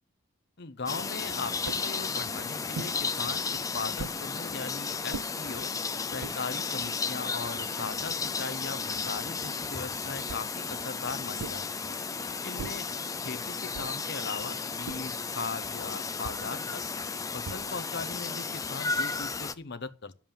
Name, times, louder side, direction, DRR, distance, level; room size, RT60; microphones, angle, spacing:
voice 1, 0.6-5.7 6.1-11.9 12.4-12.9 13.2-16.8 17.3-20.1, left 4 dB, 50° left, 0.9 m, -39 dB
sound 1, 0.9-19.5, left 5 dB, 15° left, 0.5 m, -34 dB
sound 2, 1.7-1.9 2.7-3.0 4.0-4.2 5.1-5.3 6.0-6.4 7.1-7.2 7.4-8.5 10.3-10.6 11.4-11.7 12.6-12.9 13.7-14.1 14.9-15.2 16.2-16.5 17.4-17.9, right 5 dB, 85° right, 0.5 m, -41 dB
11.0 x 7.4 x 7.3 m
head